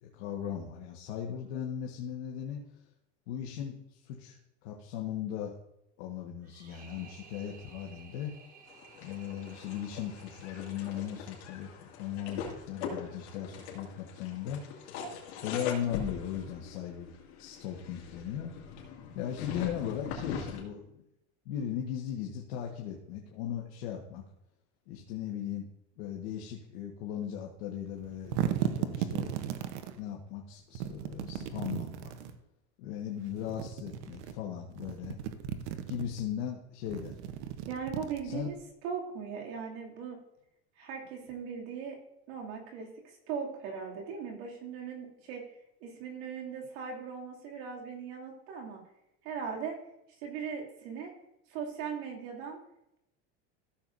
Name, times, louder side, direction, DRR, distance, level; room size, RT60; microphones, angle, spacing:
voice 1, 0.0-2.6 3.3-5.6 6.0-8.4 9.0-14.7 15.4-17.1 17.4-18.6 19.1-21.0 21.4-24.2 24.9-25.7 26.0-29.4 29.9-32.1 32.8-35.2 35.9-37.2 38.2-38.5, left 9 dB, 65° left, -1 dB, 1.4 m, -38 dB
sound 1, 6.4-11.6, right 5 dB, 25° right, 1.2 m, -56 dB
sound 2, 8.7-20.6, left 6 dB, 80° left, 2.4 m, -42 dB
sound 3, 28.0-30.0 30.8-32.4 33.3-34.3 34.7-36.2 36.8-38.6, right 10 dB, 80° right, 0.9 m, -36 dB
voice 2, 37.7-38.6 38.8-40.2 40.8-42.0 42.3-42.9 43.3-45.4 45.8-48.8 49.2-49.7 50.2-51.1 51.5-52.6, right 6 dB, 65° right, -1 dB, 2.6 m, -39 dB
14.5 x 7.1 x 2.6 m, 0.82 s
supercardioid pair, 160°, 33 cm